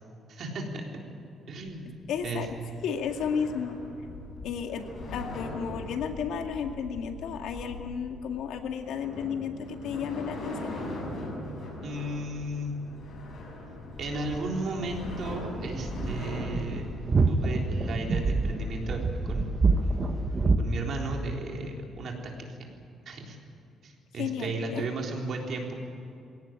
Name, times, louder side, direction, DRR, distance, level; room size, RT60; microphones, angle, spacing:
voice 1, 0.3-0.9 1.5-1.9 2.2-2.5 11.8-12.7 14.0-16.9 17.3-19.6 19.8-20.2 20.6-22.6 23.1-23.4 23.8-25.7, right 2 dB, 50° right, 1 dB, 3.7 m, -35 dB
sound 1, 1.6-20.2, left 2 dB, 50° left, 6.2 m, -40 dB
voice 2, 2.1-2.5 2.8-3.8 4.4-10.7 24.2-24.8, left 7 dB, 80° left, 4 dB, 2.1 m, -33 dB
sound 2, 15.1-20.6, right 3 dB, 25° right, 1.1 m, -26 dB
21.5 x 17.5 x 9.0 m, 2.6 s
cardioid pair, 160°, 0 cm